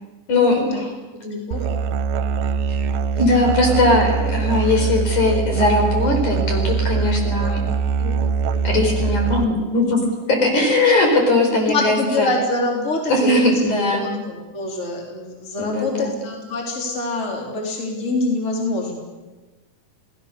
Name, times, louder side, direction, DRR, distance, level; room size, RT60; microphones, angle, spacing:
voice 1, 0.3-0.9 3.2-7.6 8.0-8.2 8.6-10.0 10.3-12.3 13.1-14.1 15.6-16.1, left 2 dB, 55° left, 2 dB, 5.8 m, -19 dB
voice 2, 1.1-1.7 11.7-13.5 14.0-19.0, left 2 dB, 20° left, 0 dB, 4.0 m, -25 dB
Musical instrument, 1.5-9.4, right 5 dB, 75° right, 2.6 m, -22 dB
28.5 x 19.0 x 6.9 m, 1.2 s
omnidirectional pair, 4.1 m